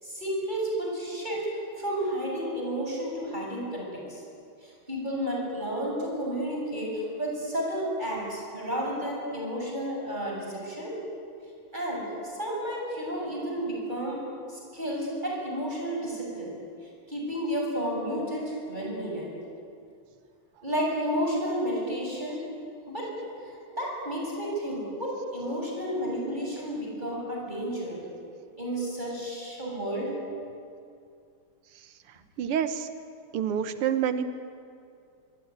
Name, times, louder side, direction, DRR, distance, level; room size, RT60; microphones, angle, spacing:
voice 1, 0.0-4.2 4.6-10.9 11.7-14.2 14.5-16.6 17.1-19.3 20.6-22.4 22.9-23.1 23.4-28.0 28.6-30.2, equal, 20° right, -2 dB, 7.8 m, -32 dB
voice 2, 32.4-32.9 33.3-34.3, right 8 dB, 90° right, 10 dB, 2.1 m, -27 dB
24.0 x 24.0 x 9.7 m, 2.4 s
omnidirectional pair, 2.4 m